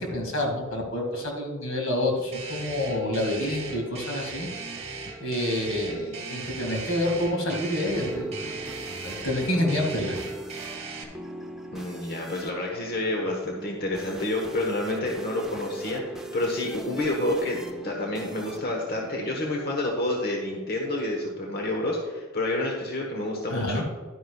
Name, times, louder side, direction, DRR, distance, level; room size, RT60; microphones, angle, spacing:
voice 1, 0.0-4.5 5.2-8.6 9.0-10.2 23.5-23.8, left 1 dB, 80° left, 0 dB, 2.2 m, -28 dB
sound 1, 2.3-11.0, right 4 dB, 30° right, 1.6 m, -38 dB
sound 2, 7.6-20.0, right 1 dB, 5° right, 0.6 m, -40 dB
voice 2, 11.7-23.8, left 1 dB, 50° left, -1 dB, 1.2 m, -29 dB
11.0 x 9.5 x 2.3 m, 1.4 s
head